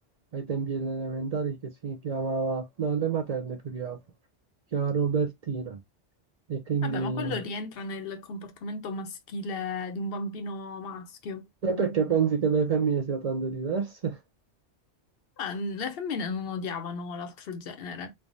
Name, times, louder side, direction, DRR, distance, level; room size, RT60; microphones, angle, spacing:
voice 1, 0.3-4.0 4.7-5.8 6.5-7.4 11.6-14.2, right 5 dB, 55° right, 0.4 m, -28 dB
voice 2, 6.8-11.5 15.4-18.1, left 3 dB, 60° left, 0.7 m, -34 dB
3.3 x 2.1 x 2.5 m
omnidirectional pair, 1.2 m